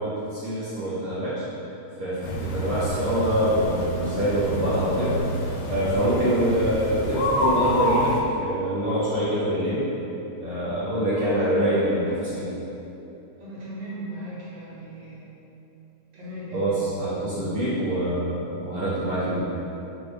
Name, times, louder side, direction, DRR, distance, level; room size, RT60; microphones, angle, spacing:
voice 1, 0.0-1.4 2.0-5.2 5.7-9.8 10.4-12.0 12.3-12.5 16.5-19.4, right 1 dB, 60° right, -11 dB, 1.1 m, -25 dB
sound 1, 2.2-8.2, left 1 dB, 70° left, 0.9 m, -28 dB
voice 2, 11.1-12.5 13.4-15.3 16.1-16.6 17.3-17.5, equal, 30° right, -10 dB, 1.0 m, -37 dB
4.3 x 2.3 x 4.5 m, 3.0 s
omnidirectional pair, 1.7 m